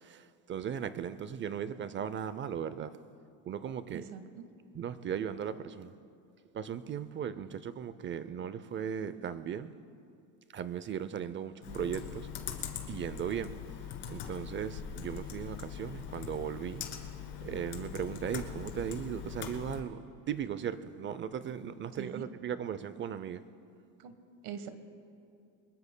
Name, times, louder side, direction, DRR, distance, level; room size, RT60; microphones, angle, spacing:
voice 1, 0.0-2.9 3.5-4.0 4.7-5.9 6.5-9.8 10.5-12.4 12.9-13.5 14.1-16.9 17.4-20.0 20.3-23.4, right 8 dB, 30° right, 0.5 m, -37 dB
voice 2, 3.9-4.5 22.0-22.3 24.0-24.1 24.4-24.7, right 8 dB, 75° right, 1.3 m, -43 dB
Computer keyboard, 11.6-19.8, left 8 dB, 70° left, 2.2 m, -42 dB
24.5 x 21.5 x 2.2 m
cardioid pair, 135°, 40 cm